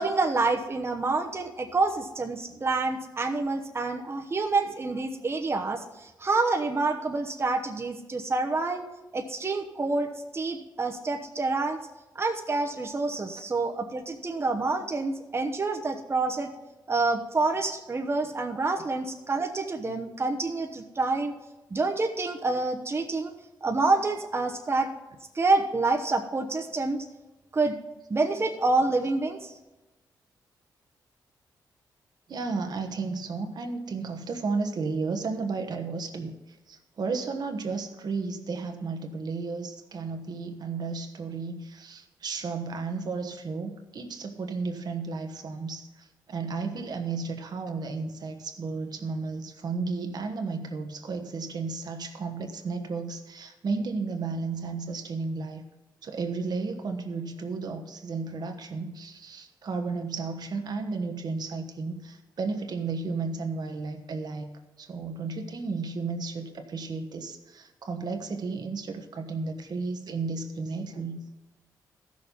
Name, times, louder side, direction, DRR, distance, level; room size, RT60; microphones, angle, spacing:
voice 1, 0.0-8.8 9.1-11.8 12.2-16.5 16.9-21.3 21.7-23.3 23.6-24.9 25.3-27.0 27.5-27.8 28.1-29.5, right 3 dB, 35° right, 3 dB, 1.0 m, -27 dB
voice 2, 32.3-55.6 56.0-64.5 64.8-71.2, right 4 dB, 65° right, 5 dB, 1.2 m, -33 dB
14.0 x 6.5 x 5.5 m, 1.1 s
cardioid pair, 60°, 8 cm